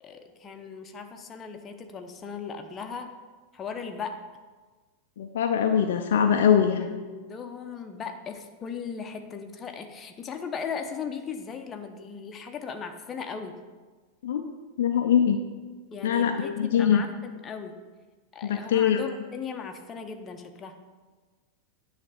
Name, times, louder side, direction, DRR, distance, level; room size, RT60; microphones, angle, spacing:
voice 1, 0.0-3.1 3.5-4.2 7.0-13.6 15.9-17.8 18.3-20.7, left 6 dB, 25° left, 5 dB, 0.8 m, -37 dB
voice 2, 5.2-6.9 14.2-14.5 14.8-15.4 16.0-17.0 18.4-19.0, left 8 dB, 60° left, 5 dB, 0.5 m, -22 dB
9.7 x 3.3 x 6.7 m, 1.4 s
figure-of-eight pair, 90°, 0 cm